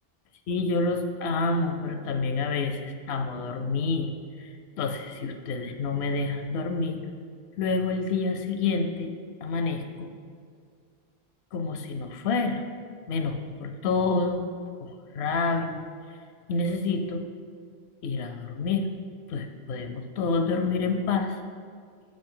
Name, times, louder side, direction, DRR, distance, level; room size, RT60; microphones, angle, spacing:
voice 1, 0.5-4.1 4.4-7.0 7.6-9.1 9.4-10.1 11.5-12.6 13.1-14.5 14.8-15.8 16.5-17.3 18.0-18.9 19.3-21.4, left 4 dB, 80° left, 6 dB, 0.8 m, -28 dB
7.2 x 5.2 x 3.7 m, 2.1 s
omnidirectional pair, 1.1 m